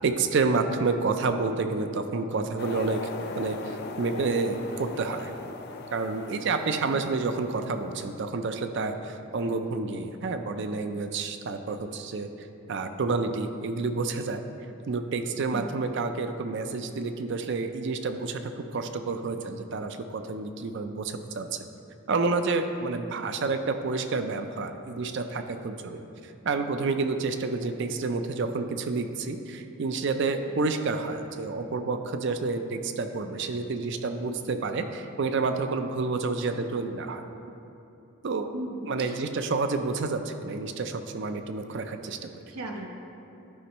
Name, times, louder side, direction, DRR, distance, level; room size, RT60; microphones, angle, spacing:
voice 1, 0.0-3.0 3.4-5.3 5.9-12.3 12.7-14.4 14.9-21.5 22.1-37.2 38.2-38.5 38.9-42.3, right 3 dB, 55° right, 8 dB, 0.4 m, -29 dB
sound 1, 2.6-8.1, left 3 dB, 45° left, 0.4 m, -39 dB
voice 2, 15.5-15.8 23.1-23.4 38.5-39.2 42.5-42.9, right 1 dB, 85° right, 1 dB, 1.0 m, -38 dB
11.5 x 5.2 x 2.9 m, 2.9 s
head